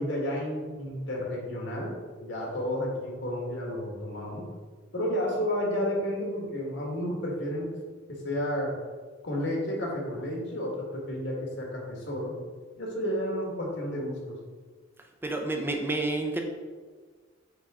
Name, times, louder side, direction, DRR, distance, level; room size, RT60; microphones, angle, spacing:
voice 1, 0.0-1.9 2.2-4.5 4.9-7.7 8.1-8.8 9.2-12.3 12.8-14.4, equal, 65° left, -2 dB, 1.7 m, -31 dB
voice 2, 15.2-16.4, right 2 dB, 10° right, 2 dB, 0.5 m, -29 dB
8.8 x 3.7 x 3.7 m, 1.5 s
head